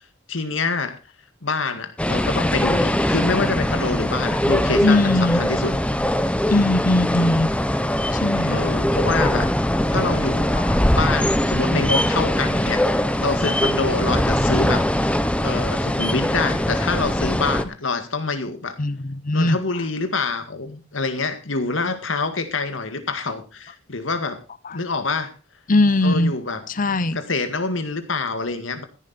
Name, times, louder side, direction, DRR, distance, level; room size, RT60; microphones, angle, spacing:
voice 1, 0.3-1.0 1.4-5.7 8.5-9.5 9.9-10.6 10.9-18.8 19.3-24.4 24.7-25.3 26.0-26.6 27.1-28.8, left 3 dB, 75° left, 2.0 m, -26 dB
sound 1, 2.0-17.6, left 1 dB, 5° left, 0.9 m, -21 dB
voice 2, 4.8-5.4 6.5-7.5 8.1-8.6 10.5-10.7 18.8-19.6 24.6-24.8 25.7-26.3 26.7-27.2, left 2 dB, 45° left, 0.8 m, -20 dB
15.0 x 10.5 x 4.2 m
head